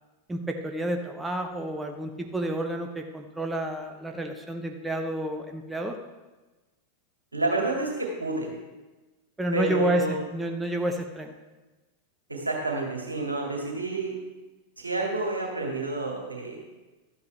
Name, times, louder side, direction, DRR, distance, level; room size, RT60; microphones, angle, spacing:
voice 1, 0.3-6.0 9.4-10.0 10.3-11.3, right 1 dB, 10° right, 4 dB, 0.8 m, -30 dB
voice 2, 7.3-8.5 9.5-10.2 12.3-14.1 14.8-16.6, right 2 dB, 80° right, 0 dB, 2.0 m, -29 dB
12.5 x 8.2 x 3.3 m, 1.2 s
figure-of-eight pair, 90°, 0 cm